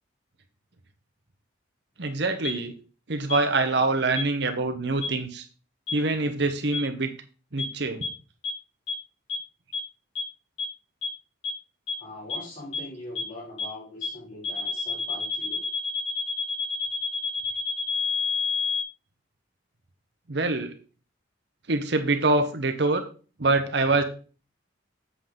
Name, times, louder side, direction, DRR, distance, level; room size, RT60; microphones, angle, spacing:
voice 1, 2.0-2.7 3.1-5.4 5.9-7.1 7.5-8.1 20.3-20.7 21.7-23.0 23.4-24.0, right 3 dB, 55° right, 7 dB, 0.9 m, -25 dB
sound 1, 2.4-2.5 3.3-3.4 4.2-4.3 5.0-5.1 5.9-6.0 6.7-6.8 7.6-7.7 8.0-8.1 8.4-8.5 8.9-9.0 9.3-9.4 9.7-9.8 10.2-10.3 10.6-10.7 11.0-11.1 11.4-11.5 11.9-12.0 12.3-12.4 12.7-12.8 13.2-13.3 13.6-13.7 14.0-14.1 14.4-18.8, left 6 dB, 75° left, 4.9 m, -28 dB
voice 2, 12.0-15.6, left 2 dB, 40° left, -4 dB, 5.0 m, -41 dB
7.9 x 6.9 x 3.8 m, 0.37 s
head